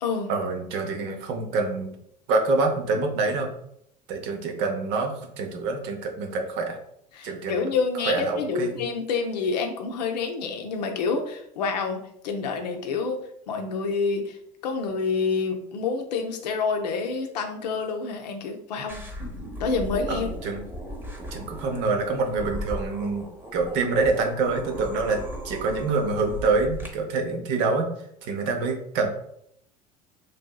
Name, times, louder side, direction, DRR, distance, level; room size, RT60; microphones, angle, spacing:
voice 1, 0.3-1.9 2.3-3.5 4.1-6.8 7.2-7.7 7.9-8.8 20.1-20.6 21.3-27.9 28.2-29.1, right 3 dB, 55° right, 4 dB, 0.7 m, -26 dB
voice 2, 7.1-13.2 13.5-14.4 14.6-19.0 19.6-20.3, left 4 dB, 80° left, 4 dB, 0.5 m, -28 dB
sound 1, 18.9-26.9, equal, 10° right, 0.9 m, -37 dB
3.3 x 2.7 x 2.2 m, 0.73 s
hypercardioid pair, 75°, 21 cm